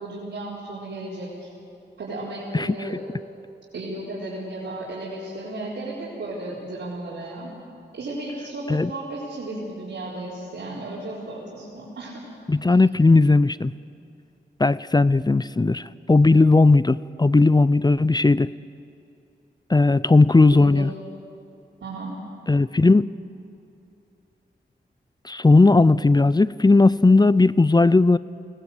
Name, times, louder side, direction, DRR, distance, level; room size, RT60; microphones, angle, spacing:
voice 1, 0.0-1.5 2.0-3.0 3.7-7.5 8.0-12.2 20.5-20.9 21.8-22.2, right 2 dB, 85° right, -9 dB, 4.3 m, -34 dB
voice 2, 12.5-13.7 14.6-18.5 19.7-20.9 22.5-23.1 25.2-28.2, left 3 dB, 20° left, 18 dB, 0.5 m, -17 dB
22.5 x 18.5 x 7.9 m, 2.7 s
cardioid pair, 55°, 19 cm